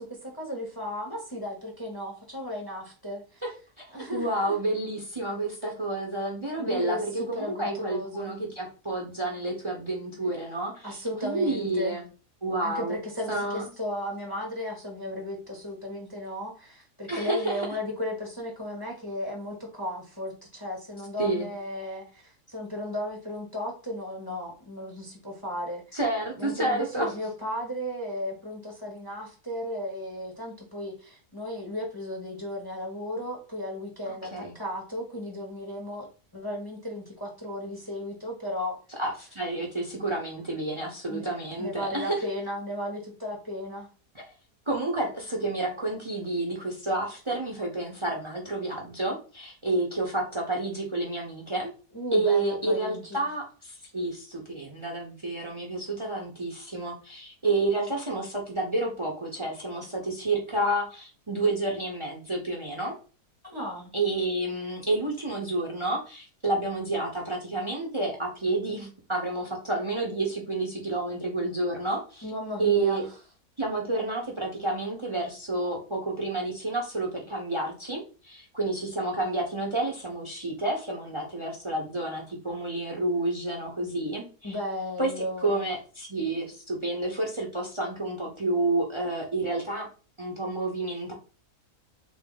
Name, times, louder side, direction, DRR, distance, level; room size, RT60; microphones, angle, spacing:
voice 1, 0.0-3.4 3.9-4.5 5.6-5.7 6.6-8.3 10.8-12.0 12.6-26.0 26.4-36.1 36.3-38.8 41.1-43.9 51.9-53.2 63.4-63.9 72.2-73.1 84.4-85.6, left 1 dB, 20° left, 0 dB, 0.7 m, -35 dB
voice 2, 3.8-10.9 11.2-12.1 12.4-13.0 13.3-13.7 17.1-17.7 21.2-21.5 25.9-27.1 34.1-34.5 39.0-42.2 44.7-51.7 52.1-62.9 63.9-72.2 72.6-73.1 73.6-84.6 85.0-89.9 90.2-91.1, right 2 dB, 35° right, 1 dB, 0.5 m, -30 dB
3.5 x 2.6 x 3.8 m, 0.36 s
omnidirectional pair, 1.6 m